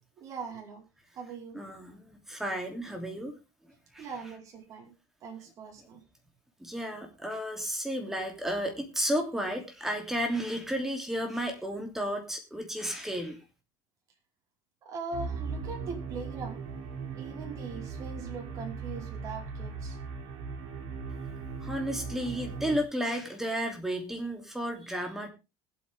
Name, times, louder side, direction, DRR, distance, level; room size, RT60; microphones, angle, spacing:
voice 1, 0.2-0.8 1.2-1.6 4.0-4.9 5.2-6.0 14.8-16.6 17.1-20.0, right 4 dB, 40° right, 1 dB, 4.8 m, -41 dB
voice 2, 1.5-3.4 3.9-4.1 6.6-13.4 21.6-25.3, equal, 5° right, 3 dB, 3.1 m, -33 dB
sound 1, 15.1-22.8, right 5 dB, 70° right, 4.5 m, -38 dB
21.0 x 8.4 x 3.6 m, 0.28 s
cardioid pair, 145°, 8 cm